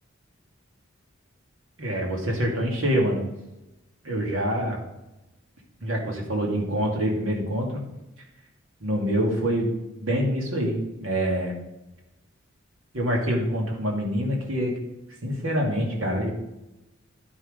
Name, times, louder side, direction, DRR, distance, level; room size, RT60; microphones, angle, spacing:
voice 1, 1.8-3.2 4.0-4.8 5.8-7.8 8.8-11.5 12.9-14.7 15.2-16.3, equal, 75° right, 0 dB, 2.4 m, -26 dB
11.0 x 6.0 x 5.1 m, 0.95 s
head